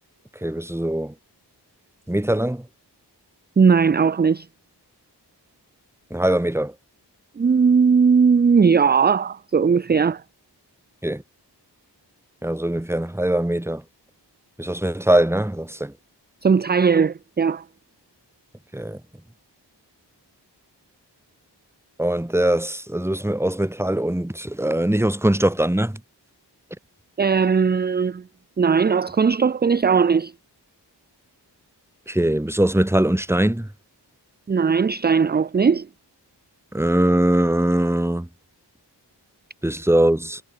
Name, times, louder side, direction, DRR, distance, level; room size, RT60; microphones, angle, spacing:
voice 1, 0.4-1.1 2.1-2.7 6.1-6.7 11.0-11.2 12.4-13.8 14.6-15.9 18.7-19.0 22.0-26.0 32.1-33.7 36.7-38.3 39.6-40.4, right 1 dB, 5° right, 1.0 m, -21 dB
voice 2, 3.6-4.5 7.4-10.2 16.4-17.6 27.2-28.2 28.6-30.3 34.5-35.9, right 5 dB, 25° right, 0.3 m, -18 dB
wide cardioid pair, 65°, 42 cm